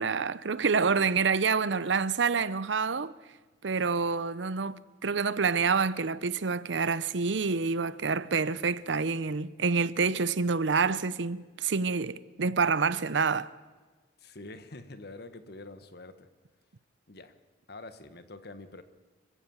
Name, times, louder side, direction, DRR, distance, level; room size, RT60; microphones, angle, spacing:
voice 1, 0.0-3.1 3.6-13.5, right 5 dB, 75° right, 0.7 m, -27 dB
voice 2, 14.2-16.3 17.1-17.4 17.7-18.8, left 2 dB, 60° left, 1.5 m, -46 dB
25.5 x 15.5 x 7.2 m
head